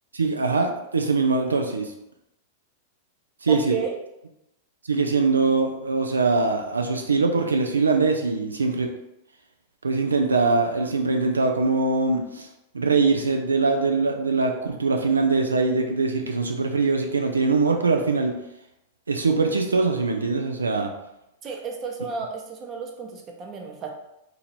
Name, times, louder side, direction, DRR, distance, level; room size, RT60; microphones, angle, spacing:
voice 1, 0.1-1.9 3.4-3.8 4.9-8.9 9.8-12.5 12.7-18.4 19.1-20.9, right 3 dB, 90° right, 3 dB, 0.5 m, -22 dB
voice 2, 3.5-3.9 21.4-23.9, right 6 dB, 30° right, 1 dB, 0.8 m, -32 dB
2.8 x 2.7 x 4.3 m, 0.88 s
hypercardioid pair, 100°, 0 cm